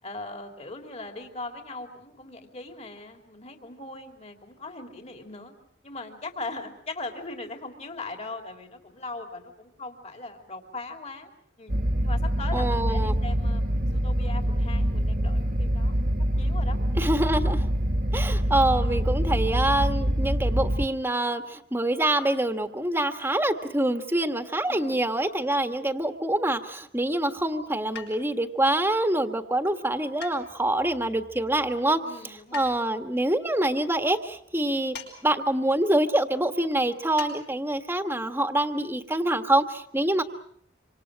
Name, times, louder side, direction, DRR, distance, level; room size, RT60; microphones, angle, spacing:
voice 1, 0.0-5.5 5.8-11.3 11.6-11.7 12.0-16.8 24.7-25.0 32.0-32.7, left 2 dB, 35° left, 4 dB, 3.2 m, -39 dB
sound 1, 11.7-20.9, equal, 50° right, 1.6 m, -25 dB
voice 2, 12.5-13.1 17.0-17.6 18.1-32.0 32.5-35.0 35.2-40.2, right 1 dB, 15° right, 7 dB, 1.6 m, -25 dB
sound 2, 27.9-28.5 30.2-30.9 32.5-32.8 34.9-35.2 35.4-35.5 37.2-37.4 37.7-37.8, left 7 dB, 70° left, 7.3 m, -41 dB
26.5 x 26.5 x 6.3 m, 0.65 s
head